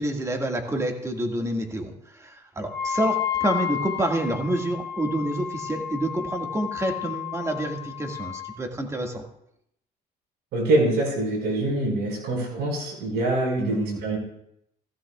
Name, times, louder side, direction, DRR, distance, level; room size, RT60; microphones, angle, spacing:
voice 1, 0.0-9.2 13.6-14.0, right 1 dB, 15° right, 2 dB, 1.9 m, -28 dB
Wind instrument woodwind instrument, 2.7-8.5, left 10 dB, 20° left, 3.6 m, -31 dB
voice 2, 10.5-14.2, right 2 dB, 75° right, -1 dB, 5.3 m, -24 dB
17.0 x 15.0 x 2.4 m, 0.75 s
cardioid pair, 110°, 17 cm